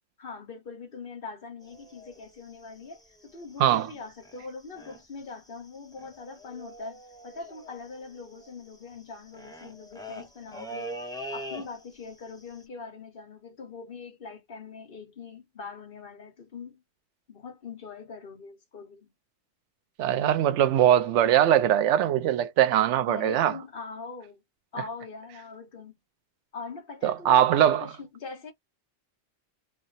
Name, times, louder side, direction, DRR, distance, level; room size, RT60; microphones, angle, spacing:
voice 1, 0.2-11.0 11.3-16.8 17.3-19.1 23.1-24.4 24.7-26.0 26.5-28.5, left 4 dB, 50° left, 1.2 m, -42 dB
sound 1, 1.6-3.9 4.2-4.5 4.7-5.2 5.5-5.6 5.7-12.1 12.4-12.6, equal, 5° left, 0.3 m, -43 dB
voice 2, 20.0-23.5 27.0-27.9, right 11 dB, 80° right, 0.9 m, -21 dB
3.2 x 2.0 x 2.6 m
omnidirectional pair, 1.2 m